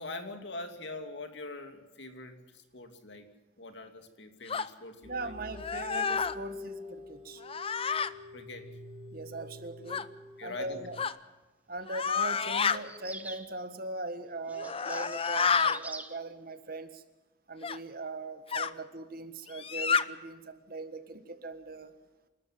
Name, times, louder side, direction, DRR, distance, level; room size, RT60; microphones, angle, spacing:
voice 1, 0.0-3.3 3.6-5.3 8.3-8.7 10.4-10.8, left 2 dB, 65° left, 7 dB, 2.7 m, -43 dB
sound 1, 4.5-4.7 5.5-6.4 7.4-8.1 9.9-10.1 11.0-11.2 11.9-12.8 14.5-15.8 17.6-17.8 18.5-18.7 19.5-20.0, left 6 dB, 30° left, 0.7 m, -29 dB
sound 2, 5.0-11.0, left 2 dB, 30° right, 1.8 m, -47 dB
voice 2, 5.0-7.4 9.1-10.1 10.4-11.0 11.7-17.0 17.5-21.9, right 2 dB, 50° right, 10 dB, 1.6 m, -40 dB
sound 3, 12.8-13.5 14.5-16.2, right 2 dB, 10° right, 1.2 m, -45 dB
28.0 x 13.0 x 7.7 m, 1.2 s
head